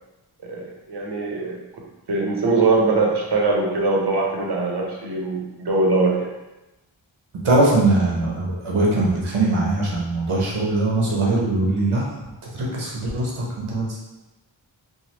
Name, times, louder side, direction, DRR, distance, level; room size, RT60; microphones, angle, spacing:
voice 1, 0.4-1.6 2.1-6.3, right 3 dB, 55° right, -1 dB, 0.8 m, -22 dB
voice 2, 7.4-12.2 12.5-14.0, right 2 dB, 85° right, -4 dB, 0.9 m, -21 dB
3.2 x 2.2 x 2.9 m, 1.0 s
wide cardioid pair, 50°, 48 cm